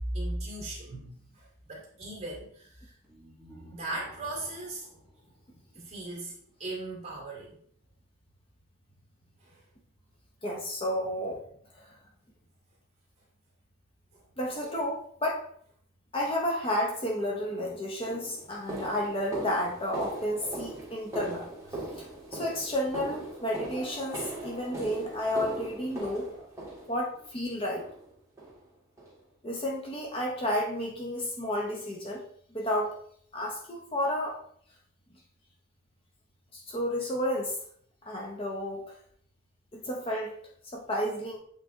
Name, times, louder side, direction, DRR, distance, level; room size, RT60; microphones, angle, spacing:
voice 1, 0.1-2.9 3.7-4.9 5.8-7.6 9.4-9.6 14.1-14.2 14.7-14.8, right 2 dB, 30° right, -4 dB, 2.3 m, -38 dB
sound 1, 3.0-6.2, equal, 5° left, 1.3 m, -54 dB
voice 2, 10.4-11.4 11.7-12.0 14.4-15.5 16.1-26.5 26.9-27.9 29.4-32.2 32.5-33.0 33.3-34.4 36.5-37.6 38.0-38.9 39.7-41.4, equal, 25° left, -1 dB, 0.8 m, -32 dB
sound 2, 17.4-17.5 18.1-27.3 27.8-28.1 28.4-28.6 29.0-29.2 29.6-29.7 30.2-30.3, right 2 dB, 15° right, 1.7 m, -40 dB
8.0 x 3.3 x 3.6 m, 0.63 s
head